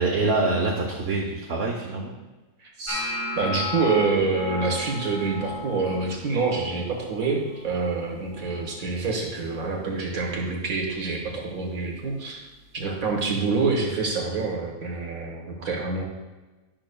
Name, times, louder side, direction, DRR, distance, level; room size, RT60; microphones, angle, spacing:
voice 1, 0.0-2.1, right 3 dB, 55° right, -1 dB, 0.9 m, -25 dB
voice 2, 2.6-3.0 3.4-12.4 12.7-16.0, right 4 dB, 85° right, 0 dB, 1.8 m, -26 dB
sound 1, 2.9-9.0 9.2-9.8 10.1-10.6 11.3-11.5 13.2-13.3, left 2 dB, 15° left, 0.9 m, -35 dB
10.5 x 5.9 x 2.3 m, 1.2 s
omnidirectional pair, 1.4 m